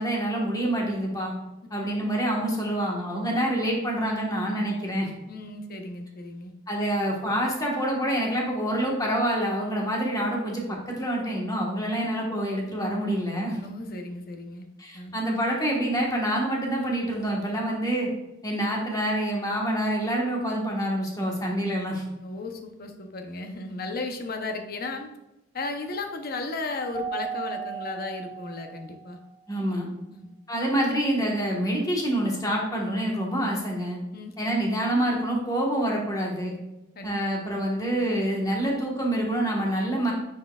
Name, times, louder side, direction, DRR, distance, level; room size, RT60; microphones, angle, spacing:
voice 1, 0.0-1.3 1.7-5.1 6.7-13.6 14.8-18.1 18.4-22.0 29.5-29.9 30.5-34.0 34.4-36.5 37.0-40.1, right 1 dB, 20° left, -2 dB, 1.4 m, -27 dB
voice 2, 5.3-6.5 13.5-14.7 14.9-15.1 22.2-25.1 25.5-29.2 30.1-30.4 34.1-34.5 36.9-37.1, left 3 dB, 50° left, 4 dB, 0.8 m, -35 dB
Keyboard (musical), 26.9-29.2, right 7 dB, 15° right, 0.6 m, -36 dB
9.5 x 4.5 x 2.4 m, 0.94 s
head